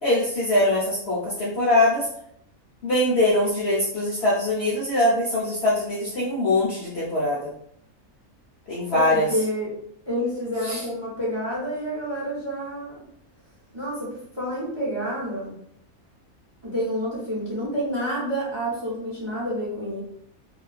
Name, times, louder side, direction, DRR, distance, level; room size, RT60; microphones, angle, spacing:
voice 1, 0.0-2.1 2.8-7.5 8.7-9.3 10.7-10.8, left 1 dB, 60° left, -7 dB, 0.7 m, -22 dB
voice 2, 8.9-9.7 10.0-13.0 13.7-15.6 16.6-20.0, equal, 25° right, -7 dB, 0.6 m, -29 dB
2.3 x 2.3 x 2.3 m, 0.70 s
omnidirectional pair, 1.6 m